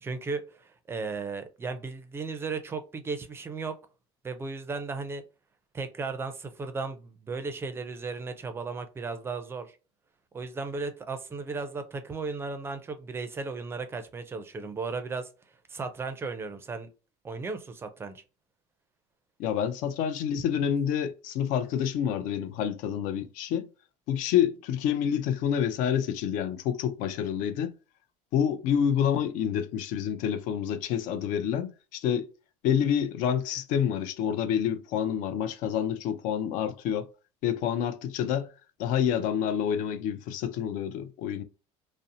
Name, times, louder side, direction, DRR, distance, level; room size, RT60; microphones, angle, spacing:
voice 1, 0.0-3.7 4.2-5.2 5.7-9.7 10.3-15.3 15.7-16.9 17.2-18.2, right 4 dB, 15° right, 0.4 m, -35 dB
voice 2, 19.4-23.7 24.1-27.7 28.3-32.3 32.6-37.1 37.4-38.5 38.8-41.4, left 9 dB, 60° left, 0.4 m, -28 dB
2.6 x 2.0 x 2.6 m
cardioid pair, 130°, 15 cm